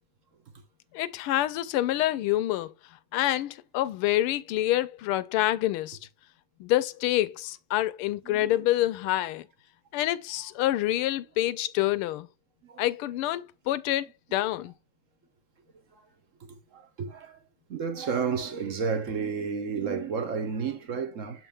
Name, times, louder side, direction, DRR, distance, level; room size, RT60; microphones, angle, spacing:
voice 1, 0.9-2.7 3.1-6.0 6.6-9.5 9.9-12.3 12.8-14.1 14.3-14.7, left 14 dB, 85° left, 1.5 m, -27 dB
voice 2, 8.2-8.6 12.6-12.8 15.9-16.0 16.7-17.4 17.7-21.5, right 5 dB, 55° right, 0.9 m, -31 dB
7.6 x 4.5 x 3.4 m
omnidirectional pair, 2.4 m